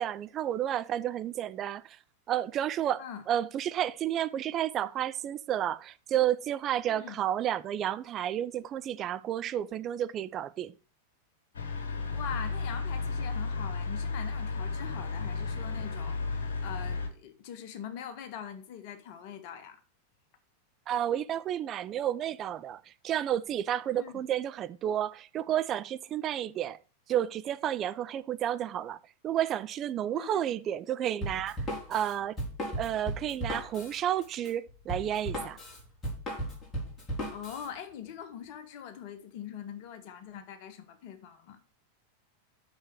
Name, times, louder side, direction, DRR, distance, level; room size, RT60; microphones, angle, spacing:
voice 1, 0.0-2.0 2.3-10.7 20.9-26.8 27.1-29.0 29.2-32.4 32.8-35.6, right 11 dB, 30° right, 0.5 m, -31 dB
voice 2, 6.9-7.2 12.1-19.8 23.9-24.2 30.1-30.4 37.3-41.6, left 8 dB, 45° left, 1.5 m, -43 dB
sound 1, 11.5-17.1, left 4 dB, 65° left, 1.8 m, -33 dB
Drum kit, 31.2-37.7, right 1 dB, 20° left, 4.5 m, -36 dB
7.3 x 6.4 x 6.2 m
figure-of-eight pair, 90°, 0 cm